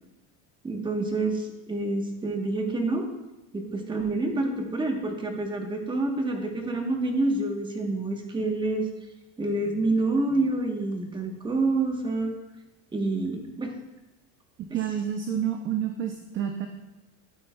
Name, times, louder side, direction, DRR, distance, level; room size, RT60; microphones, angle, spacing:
voice 1, 0.6-3.0 3.5-8.9 9.4-12.3 12.9-13.7, right 2 dB, 10° right, 3 dB, 1.0 m, -27 dB
voice 2, 14.7-16.7, right 9 dB, 30° right, 5 dB, 0.5 m, -29 dB
13.0 x 8.5 x 2.2 m, 0.97 s
cardioid pair, 150°, 42 cm